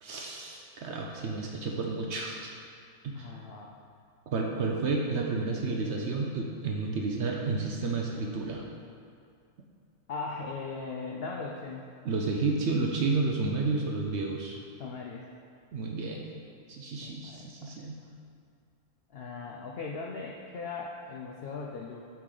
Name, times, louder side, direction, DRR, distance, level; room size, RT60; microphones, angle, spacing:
voice 1, 0.0-2.5 3.0-3.4 4.3-8.7 12.0-14.6 15.7-16.2 16.7-18.0, right 3 dB, 60° right, 0 dB, 0.8 m, -31 dB
voice 2, 3.1-3.7 10.1-11.9 14.8-15.3 17.0-17.9 19.1-22.0, left 4 dB, 70° left, -1 dB, 0.5 m, -39 dB
7.2 x 4.8 x 3.8 m, 2.3 s
omnidirectional pair, 1.6 m